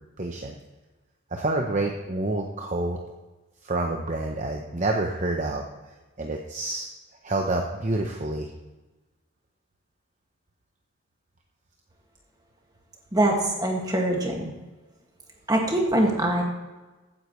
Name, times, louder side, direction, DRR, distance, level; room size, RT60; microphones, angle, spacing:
voice 1, 0.2-0.5 1.3-3.0 3.6-5.6 6.2-6.9 7.2-8.5, right 2 dB, 35° right, 2 dB, 0.8 m, -28 dB
voice 2, 13.1-14.5 15.5-16.4, right 1 dB, 20° right, 0 dB, 1.9 m, -23 dB
15.0 x 9.5 x 3.2 m, 1.2 s
head